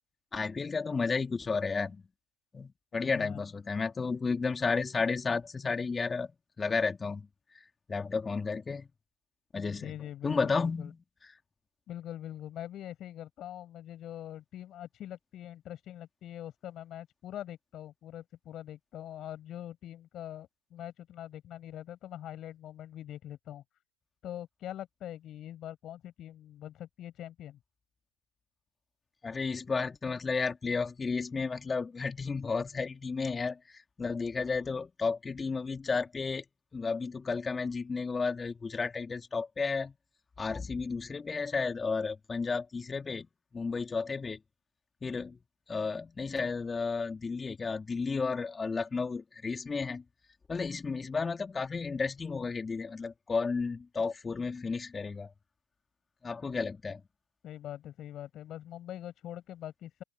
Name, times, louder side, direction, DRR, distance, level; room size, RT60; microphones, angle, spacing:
voice 1, 0.3-2.0 2.5-6.3 6.6-7.3 7.9-8.9 9.5-9.9 10.2-11.0 29.2-36.4 36.7-39.9 40.4-43.3 43.5-44.4 45.0-45.4 45.7-50.0 50.5-55.3 56.2-57.0, left 4 dB, 20° left, 3.0 m, -32 dB
voice 2, 2.9-3.4 9.7-10.9 11.9-23.6 24.2-27.6 57.4-60.0, left 12 dB, 40° left, 7.3 m, -43 dB
open air
hypercardioid pair, 95°, 0 cm